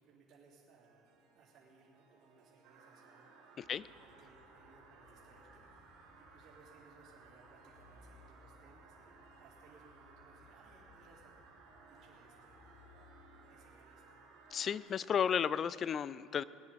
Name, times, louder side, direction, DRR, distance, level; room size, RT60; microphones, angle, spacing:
voice 1, 0.0-3.3 3.9-5.6 5.9-11.4 11.9-13.0 13.5-14.2, right 4 dB, 55° right, -8 dB, 3.0 m, -64 dB
Harp, 0.8-15.6, right 3 dB, 70° right, 2.4 m, -67 dB
sound 1, 2.6-14.8, right 5 dB, 90° right, 2.7 m, -61 dB
sound 2, 3.6-13.3, left 4 dB, 85° left, 2.4 m, -65 dB
voice 2, 14.5-16.4, left 8 dB, 35° left, 19 dB, 0.3 m, -33 dB
21.5 x 9.9 x 4.2 m, 2.7 s
cardioid pair, 130°, 0 cm